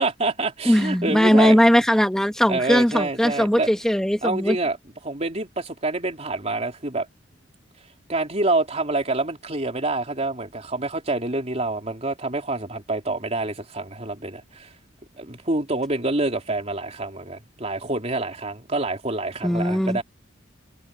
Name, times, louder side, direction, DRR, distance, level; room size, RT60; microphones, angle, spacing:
voice 1, 0.0-1.6 2.5-3.7 4.2-4.8 5.0-7.1 8.1-14.7 15.2-20.0, right 2 dB, 35° right, 3.4 m, -27 dB
voice 2, 0.6-4.6 19.4-20.0, equal, 5° left, 1.0 m, -19 dB
head